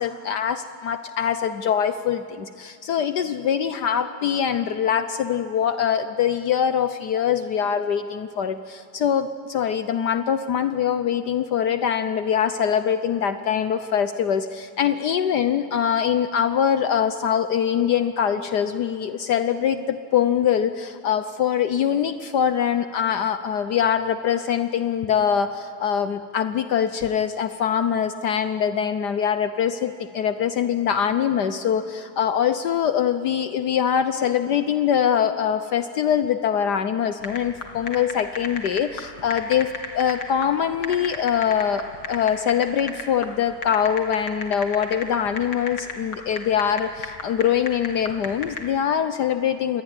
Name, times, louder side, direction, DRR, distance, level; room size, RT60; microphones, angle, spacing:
voice 1, 0.0-49.8, left 8 dB, 65° left, 10 dB, 1.4 m, -23 dB
sound 1, 37.2-48.8, left 4 dB, 85° left, 3.2 m, -33 dB
27.5 x 21.0 x 9.7 m, 2.5 s
omnidirectional pair, 2.0 m